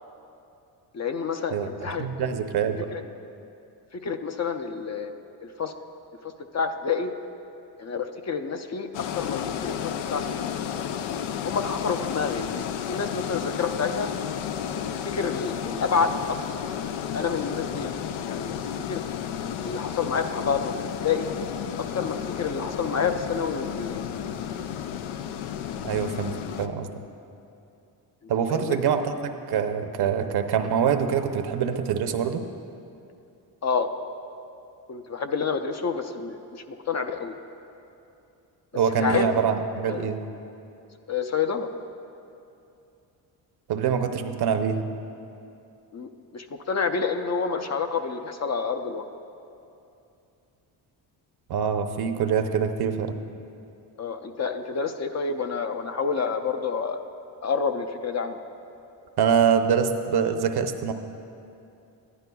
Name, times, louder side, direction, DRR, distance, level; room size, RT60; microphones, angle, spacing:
voice 1, 0.9-2.3 2.9-3.0 4.0-5.1 5.4-5.7 6.5-7.1 7.8-8.9 9.2-9.8 10.1-10.5 11.4-12.5 12.9-14.1 15.1-16.4 17.1-17.9 18.3-18.5 18.9-19.0 19.6-20.7 21.0-21.3 21.9-24.0 28.5-28.8 33.6-33.9 34.9-37.3 39.0-39.3 39.9-40.1 41.1-41.7 45.9-49.0 54.0-57.0 57.4-58.4, left 5 dB, 35° left, 7 dB, 0.6 m, -28 dB
voice 2, 1.5-2.9 25.8-26.9 28.3-32.5 38.7-40.2 43.7-44.9 51.5-53.2 59.2-60.9, right 7 dB, 55° right, 7 dB, 0.7 m, -25 dB
sound 1, 8.9-26.7, left 9 dB, 85° left, 0.6 m, -32 dB
14.0 x 11.0 x 2.3 m, 2.7 s
cardioid pair, 75°, 46 cm